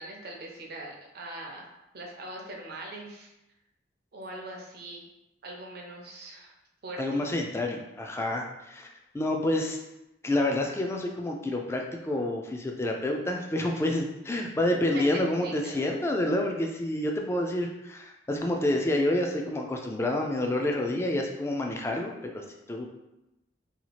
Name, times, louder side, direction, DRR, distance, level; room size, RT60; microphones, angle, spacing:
voice 1, 0.0-1.7 1.9-3.3 4.1-5.0 5.4-6.5 6.8-7.2 14.9-15.9, right 1 dB, 55° right, 0 dB, 0.6 m, -41 dB
voice 2, 7.0-8.9 9.1-9.8 10.2-22.8, left 1 dB, 15° left, 1 dB, 0.3 m, -28 dB
2.8 x 2.3 x 2.9 m, 0.93 s
head